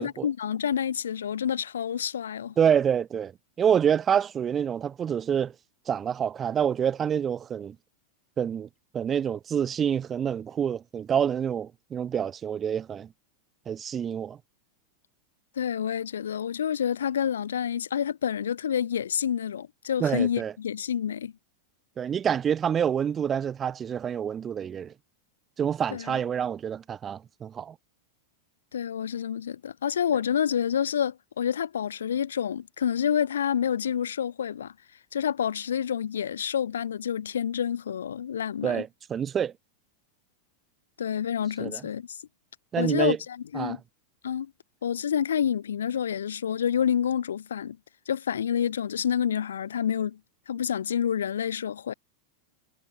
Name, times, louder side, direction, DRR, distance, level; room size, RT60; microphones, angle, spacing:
voice 1, 0.0-2.5 15.6-21.3 25.9-26.2 28.7-34.7 35.1-38.8 41.0-42.2 42.8-43.8 44.2-44.5 44.8-47.8 48.1-50.2 50.5-51.9, left 8 dB, 65° left, 5.8 m, -28 dB
voice 2, 2.6-3.3 3.6-5.5 5.9-7.8 8.4-8.7 8.9-13.1 13.7-14.4 20.0-20.5 22.0-24.9 25.6-27.8 38.6-39.5 41.6-41.8 42.7-43.2 43.5-43.8, right 8 dB, 25° right, 4.1 m, -27 dB
figure-of-eight pair, 90°, 0 cm